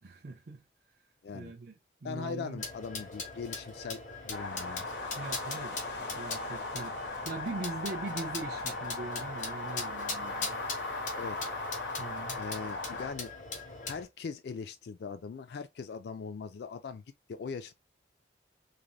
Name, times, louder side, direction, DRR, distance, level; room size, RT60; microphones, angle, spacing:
voice 1, 0.0-0.6 1.3-1.7 2.0-2.6 5.2-5.8 6.1-10.6 12.0-12.4, right 3 dB, 50° right, 0.5 m, -41 dB
voice 2, 2.0-4.0 4.2-4.8 11.2-11.4 12.4-13.3 13.8-17.0 17.3-17.7, left 5 dB, 60° left, 0.3 m, -40 dB
sound 1, 2.6-14.0, left 4 dB, 40° left, 0.9 m, -41 dB
sound 2, 4.3-13.1, left 2 dB, 85° left, 1.2 m, -38 dB
3.2 x 2.5 x 2.3 m
head